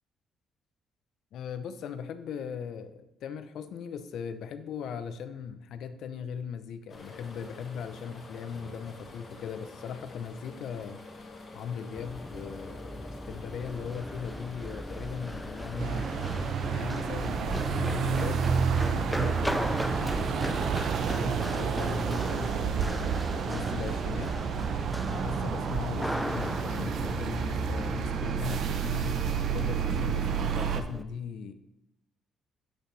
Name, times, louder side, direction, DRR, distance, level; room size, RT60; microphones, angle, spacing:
voice 1, 1.3-11.0 11.5-16.1 16.6-18.4 18.8-20.2 20.8-22.8 23.3-24.4 25.0-31.5, left 7 dB, 70° left, 11 dB, 0.6 m, -39 dB
sound 1, 6.9-16.5, left 3 dB, 45° left, 1.8 m, -47 dB
Run, 11.9-31.0, equal, ahead, 0.3 m, -38 dB
sound 2, 15.8-30.8, right 6 dB, 65° right, 0.6 m, -30 dB
8.0 x 6.7 x 3.2 m, 0.87 s
cardioid pair, 105°, 0 cm